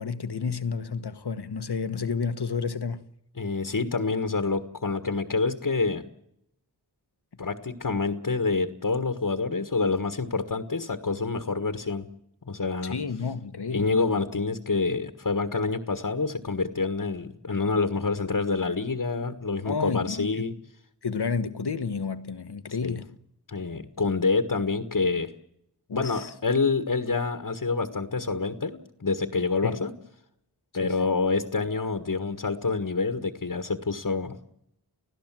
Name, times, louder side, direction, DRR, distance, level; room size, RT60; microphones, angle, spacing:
voice 1, 0.0-3.0 12.8-13.9 19.6-20.4 21.0-23.2 25.9-26.3 29.6-29.8 30.7-31.0, left 5 dB, 75° left, 1.3 m, -31 dB
voice 2, 3.4-6.0 7.4-12.1 12.4-13.0 13.7-20.5 22.8-23.0 23.5-25.3 25.9-29.9 30.7-34.4, left 4 dB, 55° left, 1.6 m, -27 dB
30.0 x 16.0 x 7.6 m
wide cardioid pair, 55°, 40 cm